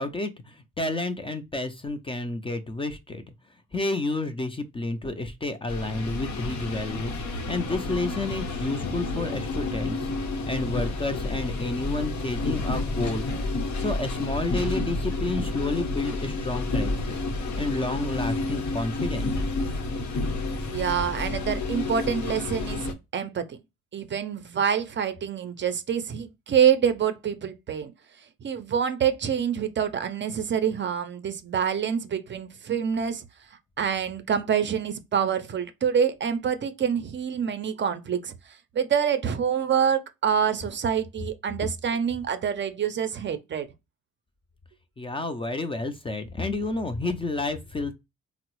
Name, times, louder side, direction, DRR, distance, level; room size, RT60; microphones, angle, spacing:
voice 1, 0.0-3.2 3.7-7.1 7.5-10.1 10.5-13.3 13.8-17.2 17.6-19.3 45.0-47.9, left 2 dB, 20° left, 0.4 m, -30 dB
sound 1, 5.7-22.9, left 2 dB, 65° left, 0.9 m, -30 dB
voice 2, 20.7-22.8 23.1-23.6 23.9-27.9 28.4-33.2 33.8-38.3 38.7-43.7, right 8 dB, 40° right, 0.5 m, -26 dB
3.6 x 2.0 x 2.9 m
cardioid pair, 90°, 30 cm